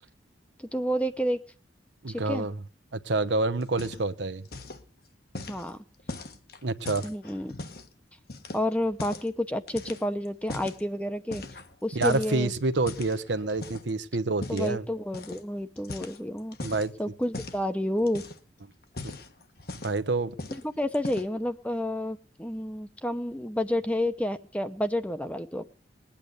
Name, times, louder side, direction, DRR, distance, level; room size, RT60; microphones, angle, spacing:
voice 1, 0.7-1.4 2.1-2.5 5.5-5.8 7.0-7.6 8.5-11.4 11.8-12.5 14.5-16.6 17.0-18.2 20.8-25.7, left 1 dB, 5° left, 0.8 m, -30 dB
voice 2, 2.0-2.6 2.9-4.5 6.6-7.1 11.9-14.8 16.6-16.9 19.0-19.1 19.8-20.3, right 3 dB, 70° right, 0.9 m, -28 dB
sound 1, 3.6-4.2 4.4-4.8 5.3-7.9 8.3-9.3 9.7-10.8 11.3-11.8 12.0-13.9 14.4-14.7 15.1-15.4 15.8-16.9 17.3-17.6 18.0-18.5 18.8-20.1 20.4-20.7 20.9-21.4, left 2 dB, 55° left, 1.3 m, -40 dB
20.5 x 8.8 x 8.0 m
head